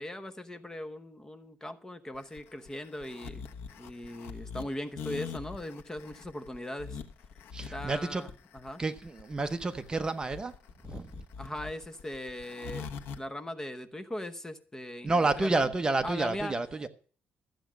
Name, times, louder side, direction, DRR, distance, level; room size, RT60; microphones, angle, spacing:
voice 1, 0.0-3.4 3.8-7.0 7.7-8.8 11.4-12.9 13.2-15.1 15.4-15.7 16.0-16.5, left 1 dB, 15° left, 0.9 m, -39 dB
sound 1, 2.1-13.2, left 6 dB, 90° left, 1.2 m, -42 dB
voice 2, 7.5-8.2 8.8-10.6 10.8-11.2 15.0-16.9, right 3 dB, 20° right, 0.9 m, -30 dB
14.0 x 8.0 x 6.2 m
cardioid pair, 140°, 4 cm